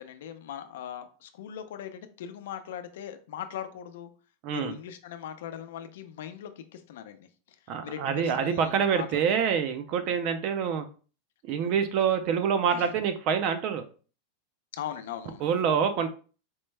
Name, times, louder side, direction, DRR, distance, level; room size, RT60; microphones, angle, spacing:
voice 1, 0.0-4.1 4.5-7.6 7.8-9.2 10.0-10.1 12.7-12.9 14.7-15.4, left 9 dB, 75° left, 9 dB, 0.5 m, -40 dB
voice 2, 4.4-4.7 7.7-10.9 11.4-13.8 15.4-16.1, right 7 dB, 45° right, 9 dB, 0.4 m, -26 dB
4.4 x 2.1 x 3.2 m, 0.38 s
supercardioid pair, 155°, 0 cm